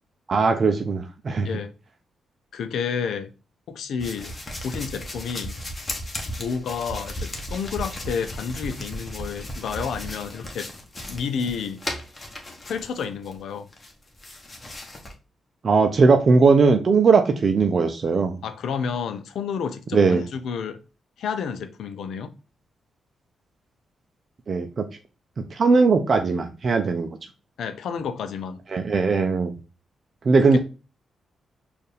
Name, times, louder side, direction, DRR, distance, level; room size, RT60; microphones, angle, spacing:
voice 1, 0.3-1.5 15.6-18.4 19.9-20.2 24.5-24.8 25.5-27.1 28.7-29.5 30.2-30.6, right 4 dB, 55° right, 0.5 m, -19 dB
voice 2, 2.5-3.3 3.7-4.3 4.6-5.6 6.4-10.7 11.1-11.8 12.6-13.7 18.4-20.8 21.2-22.3 27.6-28.6 30.5-30.6, left 6 dB, 80° left, 0.5 m, -30 dB
sound 1, 4.0-13.4 13.7-15.1, left 1 dB, 30° left, 1.1 m, -35 dB
4.4 x 2.5 x 3.3 m
cardioid pair, 65°, 0 cm